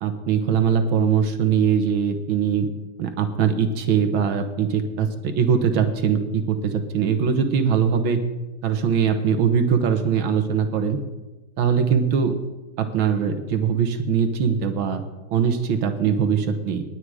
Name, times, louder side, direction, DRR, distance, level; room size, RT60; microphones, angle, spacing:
voice 1, 0.0-2.7 3.0-8.2 8.6-11.0 11.6-12.4 12.8-15.0 15.3-16.8, right 7 dB, 75° right, 8 dB, 1.8 m, -21 dB
19.0 x 8.6 x 4.9 m, 1.1 s
omnidirectional pair, 2.2 m